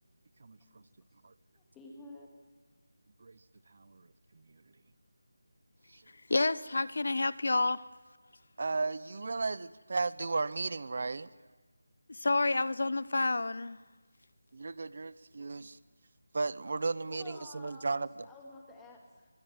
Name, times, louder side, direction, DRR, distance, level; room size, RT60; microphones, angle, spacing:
voice 1, 0.4-0.8 1.2-1.3 3.2-3.4 3.7-4.1 5.9-6.0 8.6-11.3 14.5-15.8 16.3-18.1, right 3 dB, 40° right, 18 dB, 0.7 m, -35 dB
voice 2, 1.6-2.3 7.7-7.9 17.1-19.3, left 2 dB, 5° left, 0 dB, 2.3 m, -51 dB
voice 3, 6.3-7.8 12.1-13.8, left 3 dB, 55° left, 17 dB, 0.9 m, -29 dB
23.5 x 22.5 x 9.4 m, 1.3 s
figure-of-eight pair, 175°, 0 cm